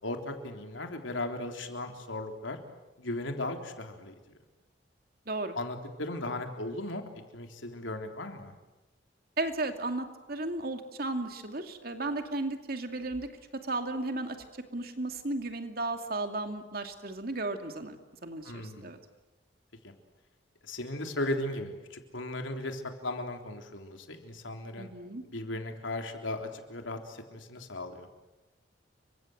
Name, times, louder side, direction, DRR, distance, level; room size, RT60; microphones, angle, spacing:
voice 1, 0.0-2.6 3.0-4.1 5.6-8.5 18.4-19.0 19.8-19.9 20.6-24.9 25.3-28.1, left 1 dB, 85° left, 4 dB, 3.6 m, -37 dB
voice 2, 9.4-13.3 13.6-18.0 18.2-19.0 24.8-25.2, right 2 dB, 50° right, 6 dB, 2.6 m, -34 dB
30.0 x 24.5 x 8.0 m, 1.0 s
head